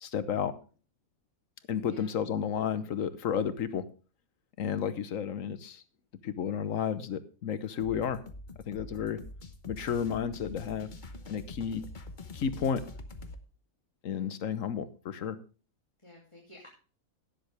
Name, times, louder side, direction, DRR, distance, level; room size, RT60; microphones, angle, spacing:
voice 1, 0.0-0.5 1.7-3.8 4.6-5.8 6.2-8.2 8.7-9.2 9.7-10.9 11.3-11.8 12.3-12.8 14.0-15.4, left 7 dB, 70° left, 13 dB, 1.3 m, -32 dB
sound 1, 7.8-13.4, left 2 dB, 40° left, 1.1 m, -45 dB
voice 2, 16.0-16.7, left 1 dB, 20° left, -2 dB, 2.8 m, -53 dB
17.0 x 7.6 x 3.4 m, 0.36 s
omnidirectional pair, 1.5 m